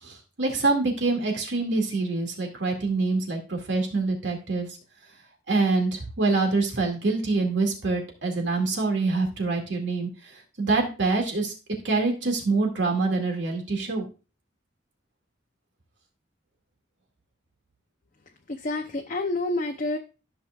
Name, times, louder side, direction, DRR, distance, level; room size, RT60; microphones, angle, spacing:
voice 1, 0.0-4.7 5.5-11.5 11.8-14.1, right 3 dB, 75° right, 2 dB, 2.2 m, -25 dB
voice 2, 18.5-20.0, left 2 dB, 45° left, 3 dB, 0.6 m, -28 dB
13.5 x 5.9 x 2.4 m, 0.32 s
head